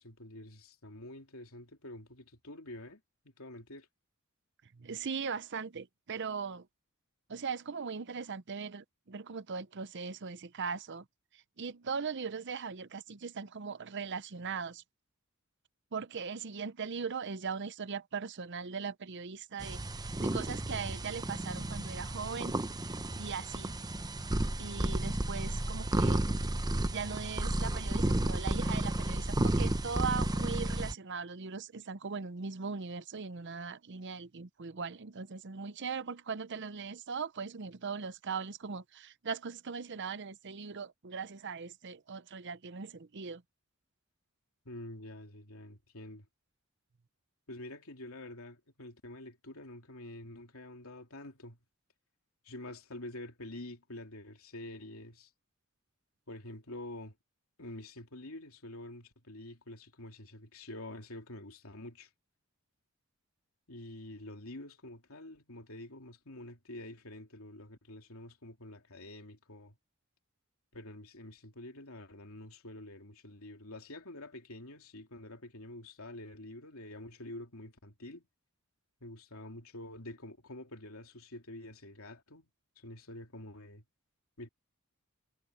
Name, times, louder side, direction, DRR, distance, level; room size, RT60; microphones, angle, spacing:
voice 1, 0.0-3.0 3.4-3.9 44.6-46.3 47.5-51.6 52.4-55.3 56.3-57.1 57.6-62.1 63.7-69.8 70.7-78.2 79.0-82.5 82.8-83.8 84.4-84.5, left 1 dB, 80° left, 3.1 m, -47 dB
voice 2, 4.7-6.7 7.3-11.0 11.3-14.8 15.9-19.8 20.2-22.6 23.2-23.7 24.6-26.2 26.9-43.4, right 5 dB, 55° right, 0.7 m, -39 dB
sound 1, 19.6-30.9, right 1 dB, 20° right, 0.8 m, -32 dB
head